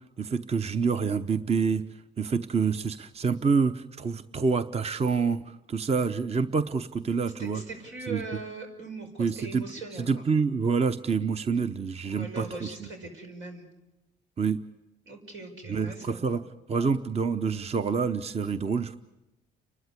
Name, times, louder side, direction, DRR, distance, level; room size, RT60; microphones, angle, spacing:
voice 1, 0.0-1.8 2.2-7.6 8.1-8.2 9.2-9.6 10.0-12.7 14.4-14.6 15.7-16.4 16.7-19.0, right 5 dB, 30° right, 11 dB, 0.8 m, -27 dB
voice 2, 7.4-10.2 12.0-13.7 15.0-16.4, right 3 dB, 80° right, 3 dB, 5.6 m, -40 dB
30.0 x 13.0 x 9.7 m, 0.98 s
cardioid pair, 90°, 20 cm